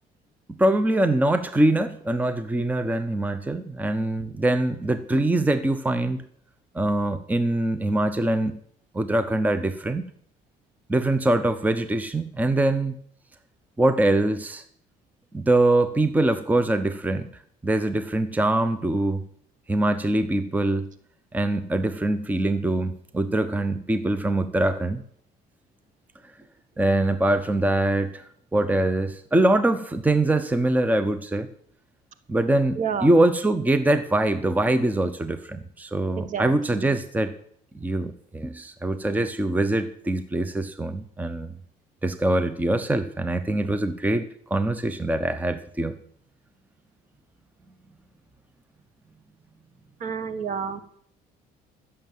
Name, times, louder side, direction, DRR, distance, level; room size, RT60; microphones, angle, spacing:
voice 1, 0.5-6.2 6.7-8.6 8.9-10.1 10.9-13.0 13.8-14.6 15.3-17.3 17.6-19.2 19.7-20.9 21.3-25.0 26.8-28.2 28.5-31.5 32.3-37.3 37.7-41.5 42.0-46.0, right 1 dB, 10° right, 11 dB, 0.8 m, -23 dB
voice 2, 32.8-33.1 36.2-36.9 50.0-50.8, right 7 dB, 50° right, 12 dB, 1.4 m, -30 dB
14.5 x 7.1 x 7.5 m, 0.63 s
cardioid pair, 110°, 17 cm